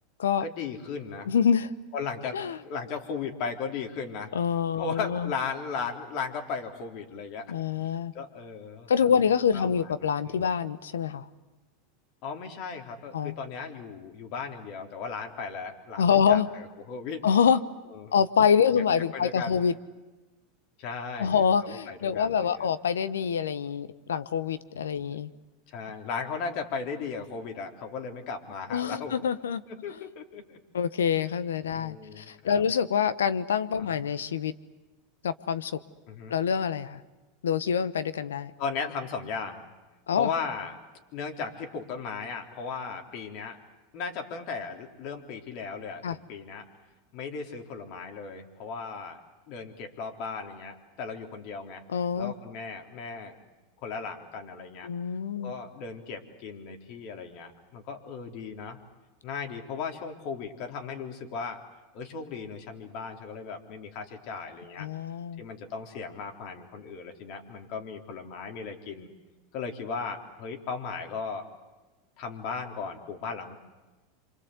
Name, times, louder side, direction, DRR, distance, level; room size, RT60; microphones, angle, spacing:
voice 1, 0.4-1.3 1.9-2.4 2.6-4.3 4.8-7.5 8.1-9.2 9.5-9.7 10.0-10.4 12.2-17.3 17.9-18.2 18.7-18.8 19.1-19.6 20.8-22.7 25.1-25.2 25.7-29.1 29.7-30.6 31.7-32.6 33.8-33.9 36.1-36.4 38.6-39.6 40.2-40.8 41.1-43.6 43.9-46.7 47.1-49.2 49.5-51.8 52.2-53.4 53.8-54.9 55.4-58.8 59.2-61.6 61.9-64.9 65.4-69.1 69.5-71.5 72.2-73.6, left 5 dB, 55° left, 4 dB, 3.8 m, -36 dB
voice 2, 1.3-1.7 2.3-2.6 4.3-5.3 7.5-8.1 8.9-11.3 13.1-13.3 16.0-16.5 17.2-17.6 18.1-19.7 21.2-25.3 28.7-29.6 29.9-30.0 30.7-34.5 35.2-35.8 36.3-37.0 37.4-38.5 40.1-40.3 46.0-46.2 51.9-52.3 54.8-55.5 64.8-65.4, left 7 dB, 85° left, 14 dB, 1.1 m, -26 dB
28.0 x 25.5 x 8.2 m, 1.2 s
hypercardioid pair, 95°, 0 cm